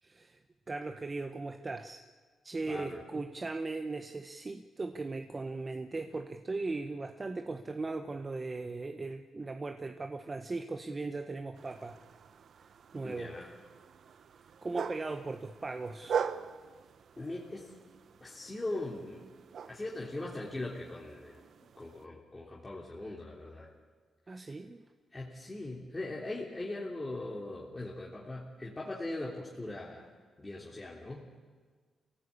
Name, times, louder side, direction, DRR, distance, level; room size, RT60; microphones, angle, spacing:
voice 1, 0.0-0.4 0.7-2.0 2.4-12.0 12.9-13.3 14.6-16.2 24.3-24.8, right 3 dB, 30° right, 6 dB, 1.1 m, -38 dB
voice 2, 2.7-3.0 13.0-13.5 17.2-17.7 18.2-19.3 19.6-21.4 21.8-23.7 24.3-24.5 25.1-30.1 30.4-31.2, left 2 dB, 20° left, -4 dB, 3.2 m, -40 dB
sound 1, 11.5-22.1, right 7 dB, 65° right, 0.9 m, -42 dB
27.5 x 17.0 x 8.5 m, 1.5 s
cardioid pair, 95°, 0 cm